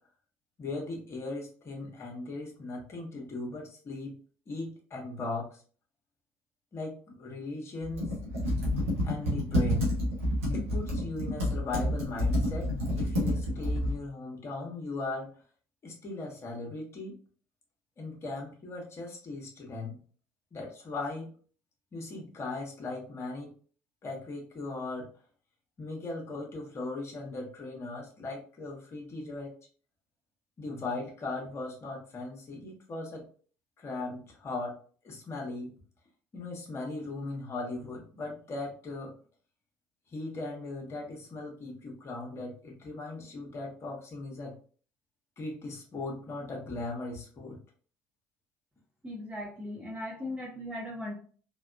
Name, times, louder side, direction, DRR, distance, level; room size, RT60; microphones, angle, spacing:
voice 1, 0.6-4.1 4.5-5.6 6.7-8.1 9.0-9.9 10.5-12.7 13.0-15.3 15.8-17.1 18.0-20.0 20.5-21.3 21.9-23.5 24.0-25.1 25.8-29.5 30.6-33.2 33.8-34.7 35.0-35.7 36.3-39.1 40.1-44.5 45.4-47.6, left 2 dB, 40° left, 0 dB, 1.1 m, -38 dB
Computer keyboard, 7.8-14.0, left 1 dB, 85° right, 1.0 m, -29 dB
voice 2, 49.0-51.1, left 1 dB, 15° right, -4 dB, 0.9 m, -38 dB
3.4 x 2.3 x 2.4 m, 0.43 s
hypercardioid pair, 65°, 7 cm